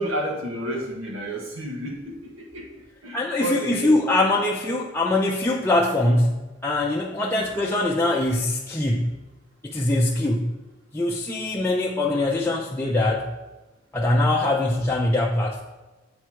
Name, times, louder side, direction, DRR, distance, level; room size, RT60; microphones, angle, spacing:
voice 1, 0.0-2.7 3.0-4.0 7.2-7.5, right 1 dB, 90° right, 0 dB, 1.5 m, -30 dB
voice 2, 3.1-9.2 9.6-10.5 10.9-13.3 13.9-15.6, left 2 dB, 10° left, -2 dB, 0.6 m, -23 dB
7.8 x 4.5 x 6.2 m, 1.2 s
head